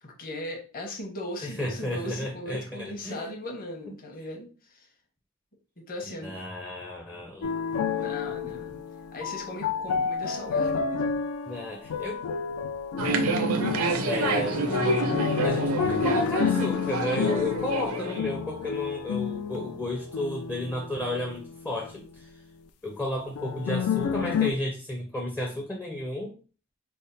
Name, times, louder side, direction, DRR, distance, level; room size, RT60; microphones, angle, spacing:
voice 1, 0.0-4.9 5.8-6.4 8.0-8.8 9.1-11.3, left 1 dB, 40° left, 1 dB, 0.9 m, -38 dB
voice 2, 1.4-3.3 6.1-7.5 11.5-12.2 14.0-22.3 22.8-26.3, left 1 dB, 10° left, -1 dB, 0.5 m, -32 dB
sound 1, 7.4-22.0 23.4-24.5, left 6 dB, 75° left, 0.4 m, -30 dB
sound 2, 13.0-18.2, right 3 dB, 70° right, 0.5 m, -28 dB
3.4 x 2.0 x 4.0 m, 0.37 s
head